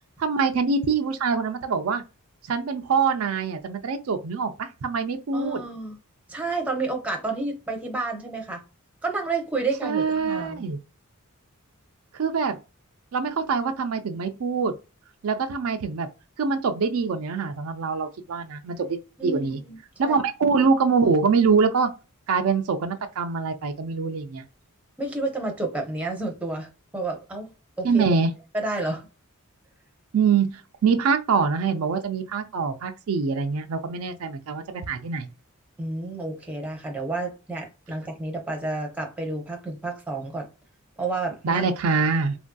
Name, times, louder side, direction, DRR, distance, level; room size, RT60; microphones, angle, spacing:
voice 1, 0.2-2.0 2.5-5.6 9.8-10.8 12.1-12.6 13.1-14.7 15.2-16.1 16.4-19.6 20.0-21.9 22.3-24.4 27.8-28.3 30.1-35.3 41.4-42.4, right 5 dB, 70° right, 0.4 m, -24 dB
voice 2, 5.3-6.0 6.3-8.6 9.0-10.7 19.2-20.2 25.0-27.5 27.8-28.0 28.5-29.1 35.8-40.5 41.0-41.6, right 3 dB, 5° right, 0.7 m, -30 dB
3.1 x 2.6 x 2.2 m
head